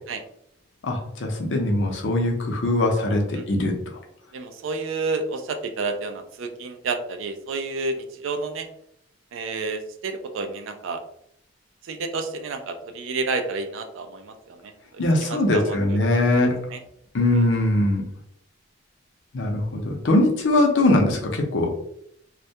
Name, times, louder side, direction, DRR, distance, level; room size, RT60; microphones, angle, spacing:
voice 1, 0.8-3.7 15.0-16.6 17.1-18.0 19.3-21.7, left 1 dB, 70° left, 1 dB, 0.6 m, -21 dB
voice 2, 4.3-8.7 9.3-11.0 11.8-16.0 16.4-16.8 17.3-17.5, right 3 dB, 80° right, 7 dB, 0.4 m, -30 dB
2.2 x 2.1 x 2.7 m, 0.70 s
head